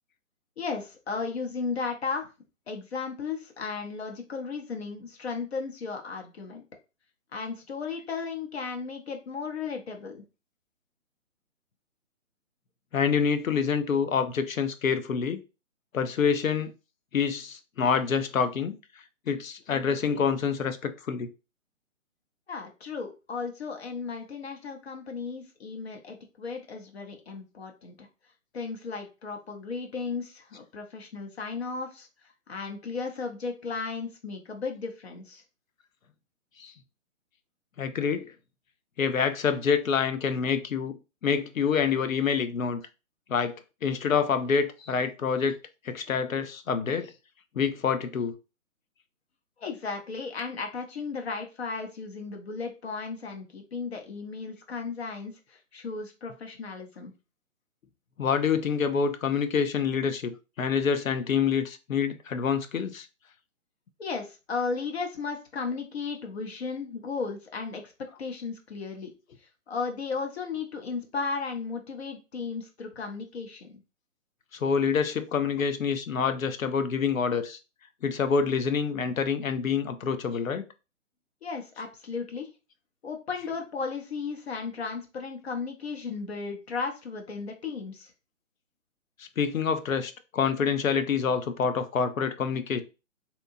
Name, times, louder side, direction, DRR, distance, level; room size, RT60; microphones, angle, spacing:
voice 1, 0.6-2.3 2.7-6.6 7.3-10.2 22.5-28.1 28.5-32.1 32.5-35.4 49.6-57.1 64.0-67.9 68.2-69.1 69.7-73.8 81.4-82.5 83.0-88.1, left 4 dB, 50° left, 0.8 m, -35 dB
voice 2, 12.9-15.4 15.9-16.7 17.1-18.7 19.3-21.3 36.6-36.7 37.8-38.3 39.0-40.9 41.2-42.8 43.3-45.6 45.8-47.1 47.6-48.3 58.2-63.1 74.6-77.6 78.0-80.6 89.2-92.8, left 6 dB, 80° left, 0.6 m, -27 dB
2.8 x 2.2 x 2.6 m
figure-of-eight pair, 135°, 40 cm